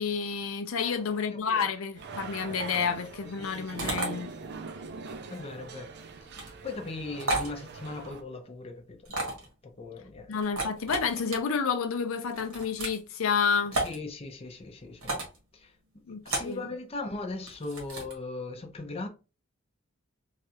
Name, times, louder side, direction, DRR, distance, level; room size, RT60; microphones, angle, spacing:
voice 1, 0.0-4.3 10.3-13.8 16.1-16.6, left 6 dB, 85° left, 0.5 m, -30 dB
voice 2, 0.8-1.7 2.7-3.9 5.3-5.9 6.5-10.4 13.7-15.2 15.5-19.1, left 3 dB, 30° left, 0.5 m, -40 dB
sound 1, 2.0-8.2, right 4 dB, 55° right, 0.5 m, -42 dB
sound 2, 3.8-4.1 6.3-6.5 7.2-7.5 9.1-9.5 10.4-11.4 12.3-13.0 13.7-14.0 15.0-15.4 16.3-16.6 17.5-18.1, right 2 dB, 80° right, 1.3 m, -32 dB
3.1 x 2.4 x 2.8 m
head